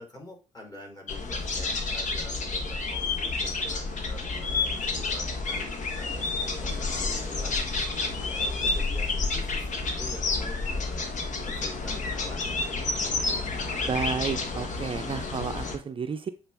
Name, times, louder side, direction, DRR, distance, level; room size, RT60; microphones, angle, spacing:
voice 1, 0.0-7.6 8.2-11.1 11.4-12.7, left 1 dB, 25° left, 1 dB, 3.3 m, -46 dB
sound 1, 1.1-15.8, left 3 dB, 55° left, 1.4 m, -30 dB
voice 2, 13.9-16.3, right 6 dB, 35° right, 9 dB, 0.5 m, -31 dB
8.0 x 4.0 x 3.4 m, 0.33 s
hypercardioid pair, 40°, 15 cm